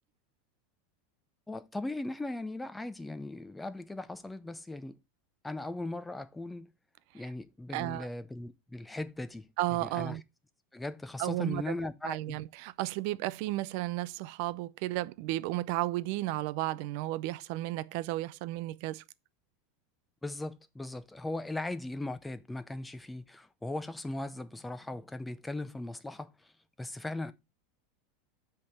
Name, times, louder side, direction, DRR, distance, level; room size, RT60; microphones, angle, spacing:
voice 1, 1.5-5.0 5.4-6.7 7.1-9.5 9.8-10.2 10.7-12.4 20.2-26.5 26.8-27.3, left 2 dB, 5° left, 0.5 m, -38 dB
voice 2, 7.7-8.1 9.6-10.2 11.2-11.7 12.0-19.0, right 17 dB, 55° right, 0.4 m, -33 dB
8.1 x 3.5 x 5.8 m
supercardioid pair, 155°, 0 cm